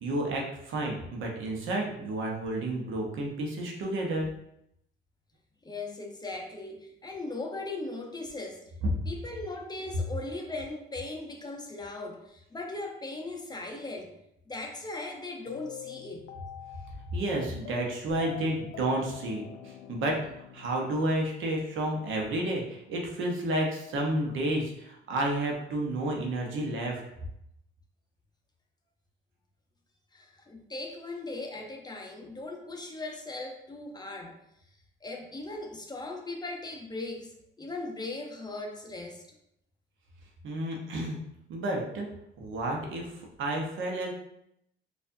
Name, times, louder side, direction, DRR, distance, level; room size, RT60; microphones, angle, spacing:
voice 1, 0.0-4.3 17.1-20.2 20.5-27.0 40.4-41.2 41.5-42.1 42.4-44.1, right 1 dB, 80° right, 0 dB, 0.9 m, -31 dB
voice 2, 5.6-8.6 9.1-14.1 14.5-16.3 30.1-34.4 35.0-39.2, left 2 dB, 20° left, 1 dB, 0.6 m, -38 dB
sound 1, 15.5-21.6, left 11 dB, 80° left, 0.4 m, -45 dB
4.3 x 2.5 x 2.6 m, 0.78 s
cardioid pair, 90°, 20 cm